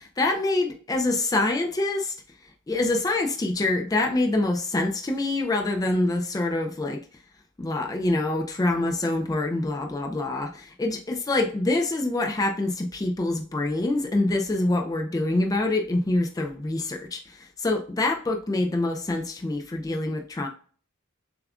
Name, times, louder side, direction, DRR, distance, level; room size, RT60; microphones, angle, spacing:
voice 1, 0.0-2.1 2.7-7.0 7.6-20.5, left 2 dB, 15° left, 0.3 m, -25 dB
6.8 x 2.3 x 2.3 m
head